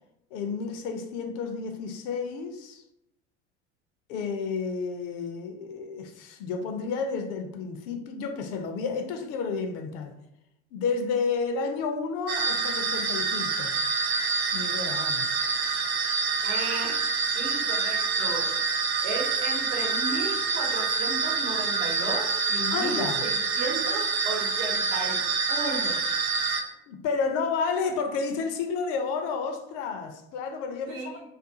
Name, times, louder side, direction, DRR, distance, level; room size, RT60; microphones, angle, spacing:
voice 1, 0.3-2.8 4.1-10.2 10.7-13.8 14.5-15.4 22.7-23.2 26.9-31.2, left 5 dB, 45° left, 0.4 m, -31 dB
Demon's Presence, 12.3-26.6, right 5 dB, 40° right, 0.5 m, -27 dB
voice 2, 16.4-17.0 17.3-18.5 19.0-25.2 25.5-26.0 30.9-31.2, right 3 dB, 65° right, 0.9 m, -34 dB
2.4 x 2.2 x 2.7 m
figure-of-eight pair, 70°, 35 cm